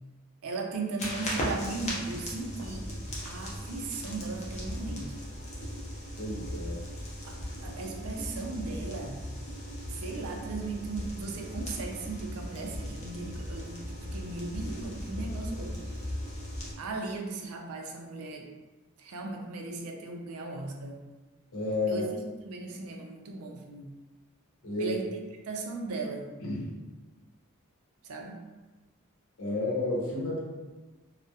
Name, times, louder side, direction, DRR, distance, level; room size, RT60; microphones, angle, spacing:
voice 1, 0.4-2.9 3.2-5.1 7.2-9.2 9.9-16.0 16.8-18.5 19.0-21.0 21.9-22.0 22.4-23.9 24.8-25.1 25.5-26.3 28.0-28.4, right 3 dB, 75° right, 2 dB, 0.4 m, -37 dB
sound 1, 1.0-16.7, equal, 30° left, 0.5 m, -38 dB
voice 2, 6.2-6.8 21.5-22.1 24.6-25.0 26.4-26.7 29.4-30.4, left 2 dB, 65° left, -5 dB, 0.7 m, -31 dB
2.3 x 2.0 x 2.7 m, 1.2 s
head